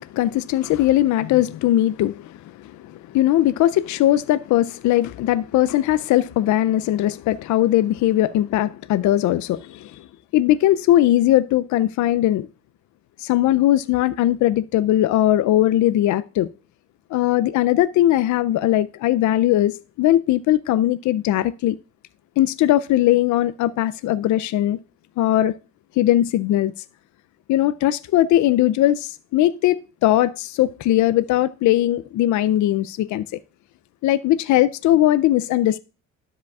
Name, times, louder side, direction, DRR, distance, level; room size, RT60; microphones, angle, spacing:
voice 1, 0.0-10.1 10.3-12.5 13.2-16.5 17.1-21.8 22.4-24.8 25.2-25.5 26.0-26.7 27.5-33.4 34.0-35.8, left 13 dB, 70° left, 0.5 m, -19 dB
12.5 x 5.1 x 2.3 m
cardioid pair, 90°, 30 cm